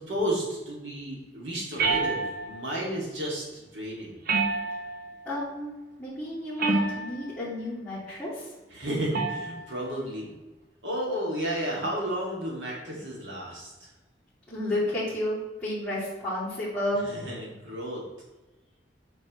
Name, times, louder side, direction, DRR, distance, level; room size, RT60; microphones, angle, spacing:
voice 1, 0.0-4.2 8.7-10.3 10.8-13.9 17.1-18.0, equal, 90° right, -3 dB, 2.5 m, -32 dB
sound 1, 1.8-2.6 4.3-5.1 6.6-7.3 9.1-9.6, right 3 dB, 55° right, 0.9 m, -27 dB
voice 2, 5.3-5.7 6.0-8.5 14.5-17.0, left 1 dB, 5° left, -14 dB, 2.5 m, -31 dB
8.4 x 5.3 x 3.2 m, 1.1 s
head